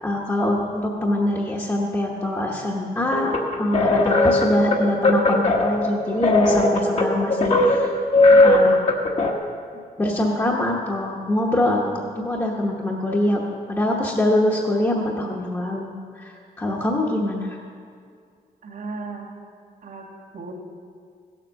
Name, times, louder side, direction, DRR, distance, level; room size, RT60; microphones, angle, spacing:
voice 1, 0.0-3.3 3.6-7.9 8.4-8.8 10.0-11.8 12.2-13.4 13.7-17.6, left 1 dB, 15° left, -4 dB, 1.1 m, -23 dB
sound 1, 3.1-9.3, left 2 dB, 45° left, 1.2 m, -18 dB
voice 2, 18.6-19.3 19.8-20.5, right 3 dB, 65° right, -3 dB, 2.2 m, -36 dB
16.0 x 7.5 x 6.4 m, 2.2 s
wide cardioid pair, 145°, 16 cm